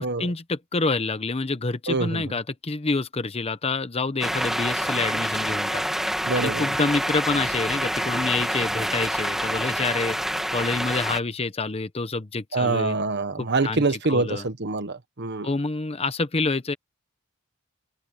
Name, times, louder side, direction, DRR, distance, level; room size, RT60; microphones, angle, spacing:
voice 1, 0.0-5.8 6.3-10.2 10.5-13.0 13.4-14.5 15.4-16.7, left 3 dB, 30° left, 0.8 m, -27 dB
voice 2, 1.9-2.2 6.3-6.6 12.5-15.5, right 3 dB, 55° right, 1.2 m, -25 dB
sound 1, 4.2-11.2, equal, ahead, 2.0 m, -27 dB
head